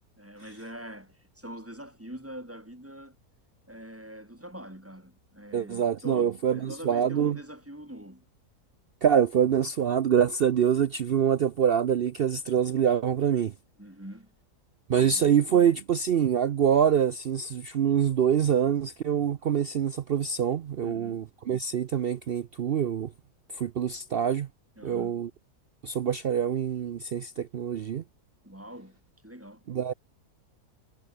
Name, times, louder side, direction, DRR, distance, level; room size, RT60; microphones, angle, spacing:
voice 1, 0.2-3.2 3.7-8.2 13.8-14.3 20.8-21.2 24.8-25.2 28.4-29.6, equal, 10° right, 2.8 m, -44 dB
voice 2, 5.5-7.4 9.0-13.5 14.9-23.1 23.5-24.5 24.8-25.3 25.8-28.0 29.7-29.9, right 8 dB, 85° right, 0.5 m, -25 dB
omnidirectional pair, 1.7 m